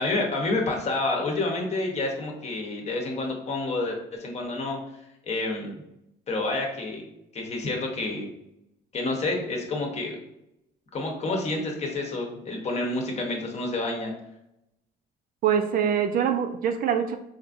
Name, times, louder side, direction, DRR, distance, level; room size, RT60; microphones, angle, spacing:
voice 1, 0.0-4.8 5.2-5.7 6.3-7.0 7.3-8.3 8.9-10.2 10.9-14.1, left 2 dB, 40° left, 1 dB, 0.9 m, -29 dB
voice 2, 15.4-17.2, right 8 dB, 60° right, 7 dB, 0.4 m, -24 dB
4.0 x 2.5 x 2.4 m, 0.83 s
cardioid pair, 110°, 17 cm